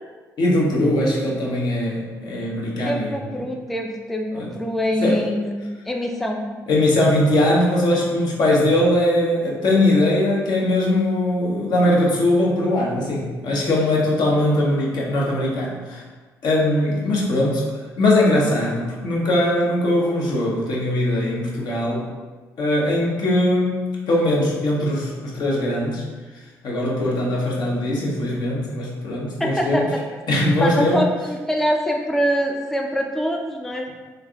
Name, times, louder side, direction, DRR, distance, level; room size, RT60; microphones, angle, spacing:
voice 1, 0.4-3.1 4.3-4.5 5.0-5.2 6.7-16.0 16.4-17.6 18.0-22.1 22.6-26.0 26.6-29.9 30.3-31.0, left 1 dB, 60° left, -3 dB, 0.8 m, -20 dB
voice 2, 2.8-5.5 5.9-6.4 29.4-30.0 30.6-33.9, equal, 5° left, 1 dB, 0.3 m, -24 dB
3.3 x 2.5 x 2.2 m, 1.4 s
hypercardioid pair, 50°, 8 cm